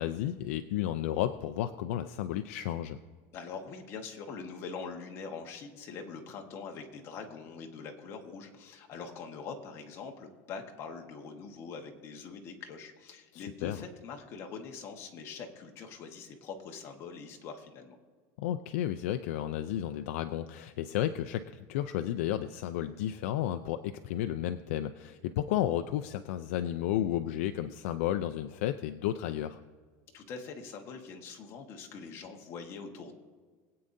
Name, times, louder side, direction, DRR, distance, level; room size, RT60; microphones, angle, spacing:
voice 1, 0.0-3.0 13.3-13.8 18.4-29.6, left 12 dB, 80° left, 9 dB, 0.5 m, -32 dB
voice 2, 3.3-17.9 30.1-33.1, left 5 dB, 40° left, 2 dB, 1.4 m, -43 dB
22.5 x 8.6 x 2.7 m, 1.5 s
cardioid pair, 160°, 7 cm